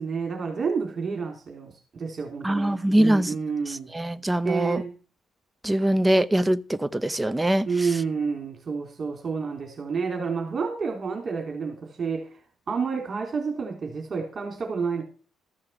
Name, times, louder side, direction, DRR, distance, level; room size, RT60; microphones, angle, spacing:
voice 1, 0.0-3.9 4.4-4.9 7.7-12.3 12.7-15.0, right 5 dB, 45° right, 3.8 m, -29 dB
voice 2, 2.4-3.3 3.7-4.8 5.6-7.7, right 1 dB, 10° right, 0.7 m, -23 dB
14.5 x 6.5 x 5.9 m
cardioid pair, 90°, 0 cm